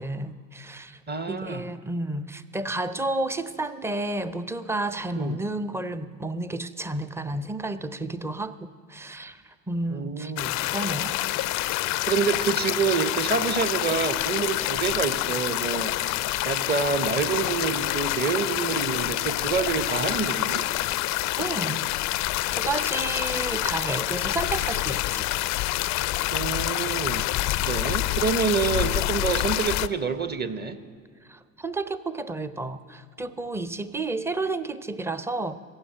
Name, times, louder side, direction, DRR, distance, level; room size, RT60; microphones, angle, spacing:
voice 1, 0.0-1.0 1.3-10.3 10.7-11.2 21.4-21.9 22.5-25.3 31.3-35.6, right 2 dB, 5° right, 12 dB, 0.6 m, -31 dB
voice 2, 1.1-1.7 5.2-5.4 9.9-10.5 12.1-16.2 16.4-20.7 26.3-27.3 27.6-30.8, right 5 dB, 25° right, 11 dB, 0.9 m, -27 dB
sound 1, 10.4-29.9, left 17 dB, 45° left, 0.4 m, -27 dB
15.5 x 7.2 x 9.2 m, 2.1 s
figure-of-eight pair, 55°, 42 cm